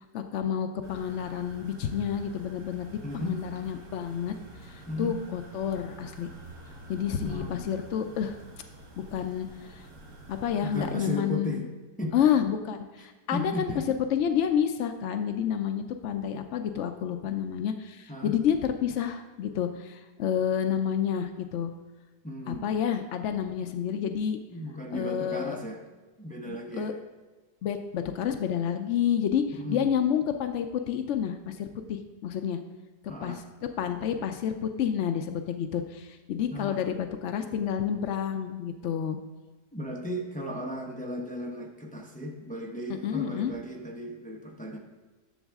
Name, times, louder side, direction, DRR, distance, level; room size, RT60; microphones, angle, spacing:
voice 1, 0.1-2.9 3.1-4.3 4.6-6.3 6.9-8.4 9.1-9.9 10.3-11.6 12.1-13.7 14.1-21.7 22.5-24.4 24.9-25.6 26.5-26.9 27.6-32.6 33.2-33.4 33.8-39.2 43.0-43.5, left 8 dB, 90° left, 7 dB, 0.6 m, -29 dB
sound 1, 0.8-10.9, right 1 dB, 50° right, 1.6 m, -48 dB
voice 2, 3.0-3.4 4.9-5.2 7.2-7.7 10.6-11.7 12.0-12.1 13.3-13.8 18.1-18.3 22.2-22.7 24.5-25.8 26.2-26.9 29.5-29.9 33.1-33.4 36.5-36.8 39.7-44.8, left 1 dB, 15° left, 0 dB, 0.3 m, -35 dB
11.0 x 7.1 x 3.5 m, 1.3 s
omnidirectional pair, 1.8 m